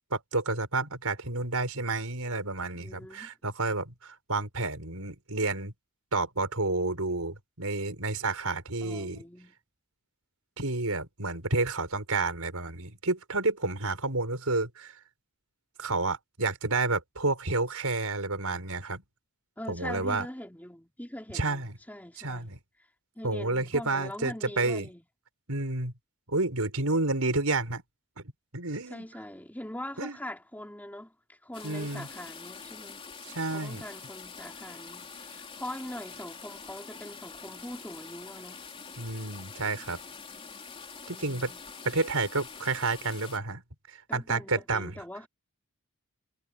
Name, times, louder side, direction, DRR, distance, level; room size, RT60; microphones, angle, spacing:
voice 1, 0.1-5.7 6.1-9.2 10.6-14.9 15.8-19.0 19.7-20.3 21.3-21.8 22.2-22.6 23.2-24.9 25.5-25.9 26.3-27.8 28.2-28.3 28.5-29.0 30.0-30.2 31.6-32.1 33.2-33.8 39.0-40.0 41.1-41.5 41.8-43.6 43.9-45.0, right 3 dB, 75° right, 5.0 m, -30 dB
voice 2, 2.8-3.3 8.8-9.6 19.6-22.5 23.1-25.0 28.9-33.0 33.5-38.6 41.1-41.6 44.1-45.3, left 1 dB, 10° left, 3.2 m, -42 dB
sound 1, 31.5-43.4, left 5 dB, 25° left, 3.6 m, -45 dB
head